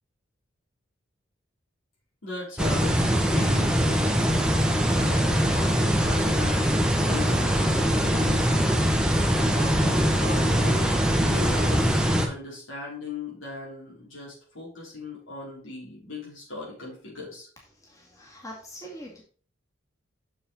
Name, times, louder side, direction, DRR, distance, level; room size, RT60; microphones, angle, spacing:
voice 1, 2.2-4.3 5.0-6.6 7.0-8.5 9.5-11.9 12.2-17.5, left 3 dB, 90° left, -4 dB, 4.8 m, -38 dB
sound 1, 2.6-12.3, equal, 5° right, 0.9 m, -22 dB
voice 2, 17.8-19.2, equal, 15° left, -2 dB, 2.2 m, -43 dB
7.0 x 6.7 x 4.1 m, 0.42 s
head